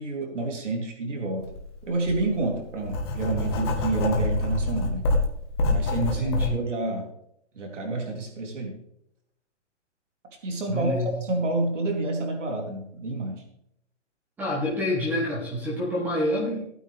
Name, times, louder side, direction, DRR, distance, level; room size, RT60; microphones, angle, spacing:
voice 1, 0.0-1.5 1.8-5.1 5.7-7.1 7.5-8.8 10.2-13.4, right 2 dB, 80° right, 1 dB, 3.4 m, -29 dB
Writing, 1.4-1.6 2.0-6.5, left 2 dB, 20° left, 1.1 m, -26 dB
voice 2, 6.0-6.6 10.7-11.1 14.4-16.6, left 1 dB, 5° right, -3 dB, 1.2 m, -27 dB
16.0 x 9.0 x 3.4 m, 0.75 s
hypercardioid pair, 175°, 36 cm